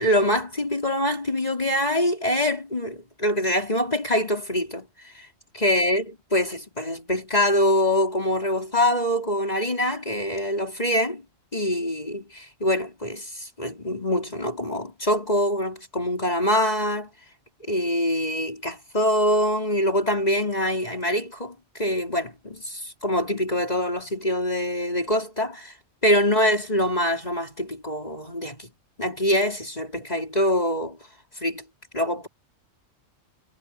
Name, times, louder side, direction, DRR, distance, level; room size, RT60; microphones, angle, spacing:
voice 1, 0.0-5.3 5.5-11.2 11.5-17.1 17.7-25.7 26.0-28.7 29.0-31.0 31.4-31.6 31.9-32.3, left 1 dB, 30° left, 4.6 m, -24 dB
omnidirectional pair, 1.3 m